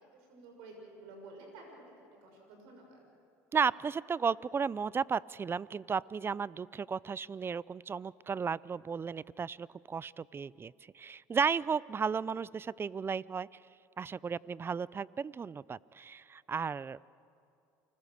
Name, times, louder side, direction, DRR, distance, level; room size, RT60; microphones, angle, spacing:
voice 1, 0.1-3.0, right 2 dB, 80° right, 2 dB, 6.2 m, -52 dB
voice 2, 3.5-13.5 14.0-17.0, right 6 dB, 30° right, 22 dB, 0.5 m, -34 dB
29.0 x 20.5 x 6.7 m, 2.6 s
supercardioid pair, 75°, 8 cm